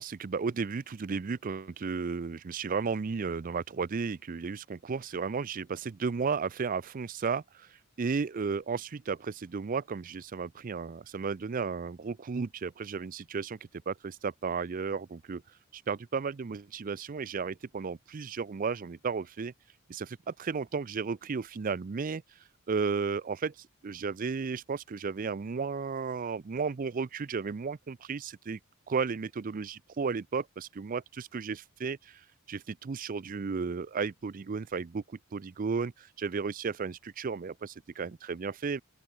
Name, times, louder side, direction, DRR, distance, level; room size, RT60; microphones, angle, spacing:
voice 1, 0.0-7.7 8.0-13.6 13.9-15.4 15.7-19.5 19.9-22.2 22.7-28.6 28.9-32.2 32.5-38.8, right 5 dB, 40° right, 0.4 m, -34 dB
open air
head